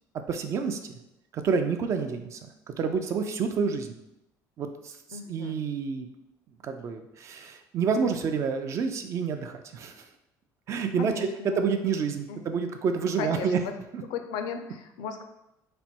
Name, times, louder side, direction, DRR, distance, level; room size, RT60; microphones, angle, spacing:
voice 1, 0.3-1.0 1.3-2.4 2.8-4.0 4.6-5.0 5.3-6.1 6.6-10.0 10.7-11.3 11.6-13.6 13.9-14.0, right 5 dB, 45° right, 7 dB, 0.4 m, -28 dB
voice 2, 5.1-5.6 11.0-11.6 12.3-12.4 13.2-13.7 14.1-15.3, left 6 dB, 85° left, 7 dB, 0.5 m, -36 dB
4.2 x 2.2 x 4.3 m, 0.87 s
cardioid pair, 140°, 7 cm